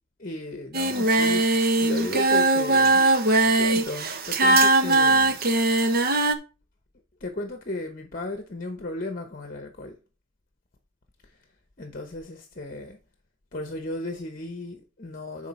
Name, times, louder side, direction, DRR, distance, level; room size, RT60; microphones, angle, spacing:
voice 1, 0.2-3.0 3.5-5.4 7.2-10.0 11.8-13.0 13.5-15.5, left 2 dB, 40° left, 0.9 m, -35 dB
Singing, 0.7-6.3, right 2 dB, 45° right, 1.0 m, -20 dB
10.0 x 4.4 x 4.2 m
head